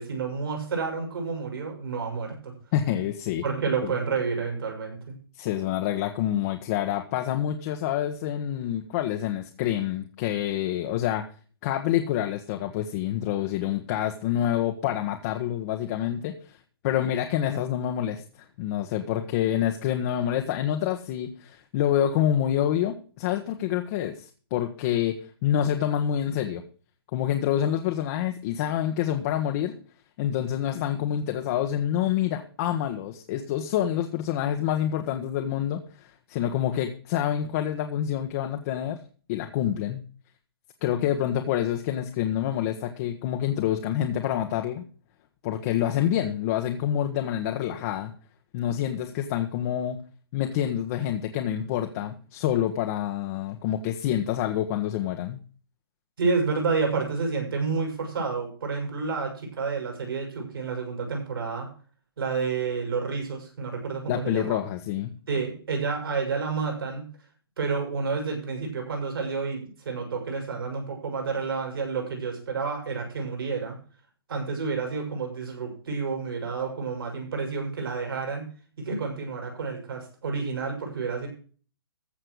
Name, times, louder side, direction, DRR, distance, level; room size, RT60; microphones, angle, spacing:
voice 1, 0.0-2.5 3.4-5.2 56.2-61.7 62.2-64.6 65.3-67.1 67.6-73.8 74.3-78.5 78.8-81.3, right 5 dB, 70° right, 3 dB, 7.0 m, -30 dB
voice 2, 2.7-3.4 3.8-3.9 5.4-11.2 11.6-16.6 16.8-18.2 18.6-26.6 27.1-29.8 30.2-39.0 39.3-40.0 40.8-44.8 45.4-48.1 48.5-50.0 50.3-55.4 64.1-65.1, left 11 dB, 35° left, 4 dB, 1.4 m, -27 dB
14.5 x 6.7 x 6.4 m, 0.40 s
hypercardioid pair, 135°, 13 cm